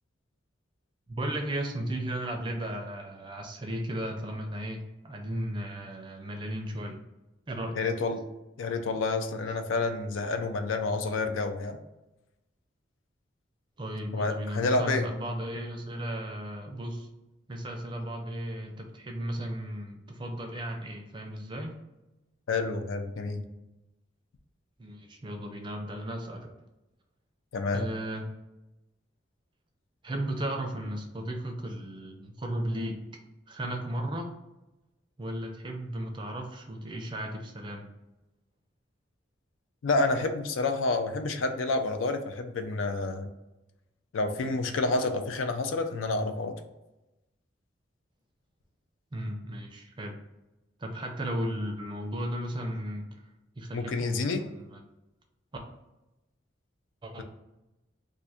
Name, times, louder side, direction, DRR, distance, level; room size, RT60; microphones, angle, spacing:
voice 1, 1.1-7.0 7.5-7.8 13.8-17.1 17.5-21.8 24.8-26.5 27.7-28.3 30.0-33.1 33.5-34.3 35.2-37.9 49.1-50.2 50.8-53.1 53.6-54.8 57.0-57.2, right 1 dB, 25° right, 3 dB, 0.4 m, -35 dB
voice 2, 7.7-8.2 8.6-11.8 14.1-15.1 22.5-23.4 27.5-27.8 39.8-43.3 44.1-46.6 53.7-54.4, left 3 dB, 90° left, 7 dB, 0.4 m, -29 dB
2.5 x 2.4 x 4.1 m, 0.99 s
head